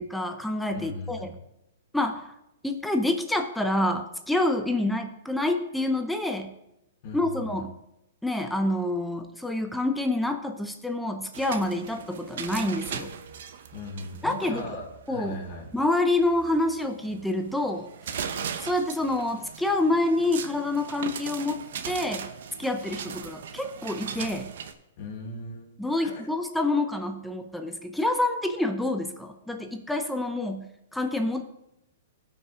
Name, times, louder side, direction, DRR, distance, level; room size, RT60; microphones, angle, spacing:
voice 1, 0.0-1.3 1.9-2.3 2.6-6.5 7.1-7.8 8.2-13.1 14.2-14.6 15.1-15.4 15.7-17.9 18.6-21.6 21.9-22.3 22.6-24.5 25.8-31.4, left 2 dB, ahead, 6 dB, 0.7 m, -27 dB
voice 2, 0.7-1.4 7.0-7.6 13.7-15.7 25.0-25.7, left 2 dB, 45° left, 0 dB, 4.3 m, -38 dB
sound 1, 11.3-24.7, right 7 dB, 65° right, 0.9 m, -39 dB
16.5 x 5.8 x 3.8 m, 0.86 s
hypercardioid pair, 145°, 0 cm